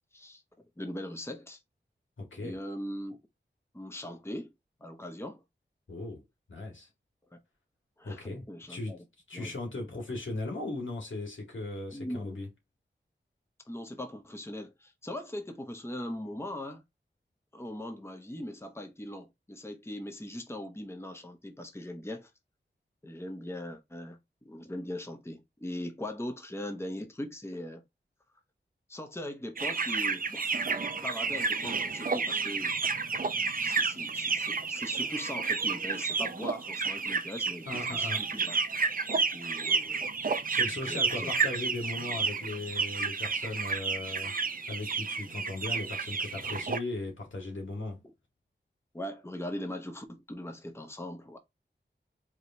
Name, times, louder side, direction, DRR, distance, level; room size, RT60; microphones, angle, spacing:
voice 1, 0.8-1.6 2.4-3.2 3.7-4.5 4.8-5.4 7.3-7.4 8.0-9.0 9.3-9.5 11.9-12.4 13.7-16.8 17.5-22.3 23.0-24.2 24.4-27.8 28.9-30.5 30.9-32.8 33.6-38.6 39.3-40.0 40.9-41.3 48.9-51.4, left 1 dB, 15° left, 0.9 m, -40 dB
voice 2, 2.2-2.6 5.9-6.2 6.5-6.9 8.0-12.5 37.7-38.3 40.5-44.3 44.7-48.0, left 2 dB, 85° left, 1.9 m, -38 dB
sound 1, 29.6-46.8, right 4 dB, 45° right, 0.5 m, -31 dB
4.9 x 3.0 x 2.7 m
wide cardioid pair, 70°, 19 cm